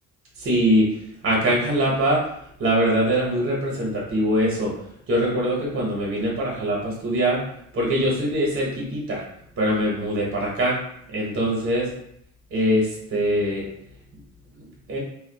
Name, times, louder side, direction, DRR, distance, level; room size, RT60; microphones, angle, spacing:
voice 1, 0.4-0.9 1.2-2.3 2.6-4.7 5.1-7.4 7.7-9.2 9.6-10.8 11.1-11.9 12.5-13.7 14.9-15.0, equal, 45° right, -4 dB, 0.8 m, -22 dB
2.5 x 2.1 x 2.3 m, 0.73 s
cardioid pair, 90°, 30 cm